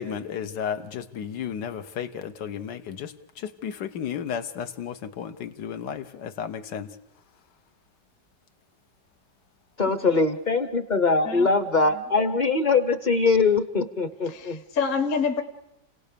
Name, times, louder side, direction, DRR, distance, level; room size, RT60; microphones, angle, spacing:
voice 1, 0.0-6.9, left 8 dB, 80° left, 9 dB, 1.7 m, -33 dB
voice 2, 9.8-14.6, left 4 dB, 35° left, 11 dB, 0.8 m, -22 dB
voice 3, 14.3-15.4, left 5 dB, 50° left, 7 dB, 1.4 m, -26 dB
29.5 x 17.5 x 6.8 m, 0.84 s
omnidirectional pair, 1.8 m